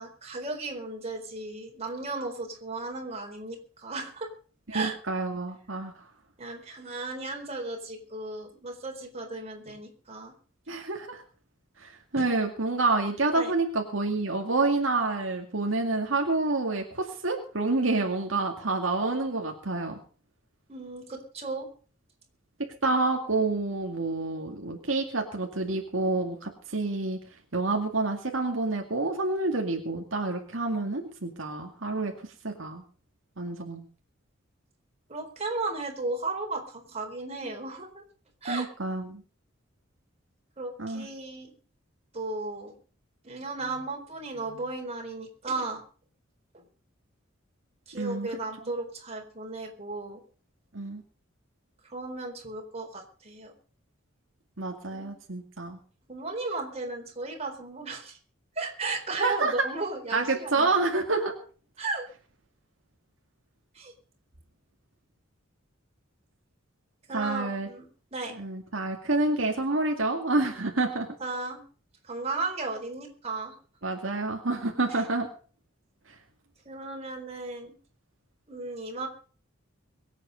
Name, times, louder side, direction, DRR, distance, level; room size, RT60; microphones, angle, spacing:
voice 1, 0.0-4.3 4.7-4.9 6.4-10.3 12.2-12.3 13.3-13.5 20.7-21.7 35.1-38.0 38.4-38.7 40.6-41.5 42.1-42.7 43.2-45.8 47.9-50.2 51.9-53.5 54.9-55.1 56.1-58.2 58.6-60.8 61.8-62.1 63.7-63.9 67.1-68.4 71.2-71.6 72.0-73.6 74.9-75.0 76.7-77.7 78.5-79.1, right 3 dB, 35° right, 2 dB, 4.2 m, -35 dB
voice 2, 4.7-5.9 10.7-11.2 11.8-20.0 22.8-27.2 27.5-32.1 32.4-32.8 33.4-33.8 38.5-39.2 40.8-41.1 48.0-48.3 50.7-51.0 54.6-55.8 59.2-59.7 60.1-61.4 67.1-67.7 68.3-71.1 73.8-75.3, right 3 dB, 75° right, 2 dB, 2.2 m, -28 dB
23.0 x 8.3 x 5.3 m, 0.41 s
head